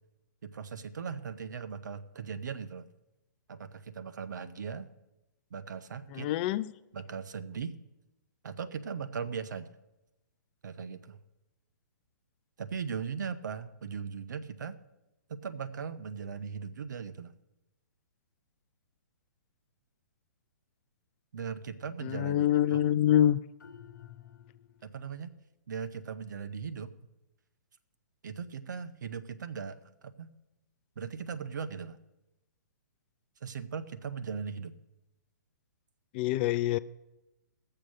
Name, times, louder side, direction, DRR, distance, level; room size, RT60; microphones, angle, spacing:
voice 1, 0.4-2.9 3.5-4.9 5.5-6.3 6.9-7.8 8.4-9.7 10.6-11.2 12.6-14.8 15.3-17.3 21.3-22.8 24.8-25.3 25.7-26.9 28.2-30.3 31.0-32.0 33.4-34.7, right 6 dB, 70° right, 0.9 m, -39 dB
voice 2, 6.1-6.7 22.0-23.4 36.1-36.8, left 12 dB, 35° left, 0.4 m, -26 dB
sound 1, 23.6-25.1, left 9 dB, 75° left, 0.9 m, -52 dB
17.0 x 6.8 x 6.2 m
figure-of-eight pair, 125°, 10 cm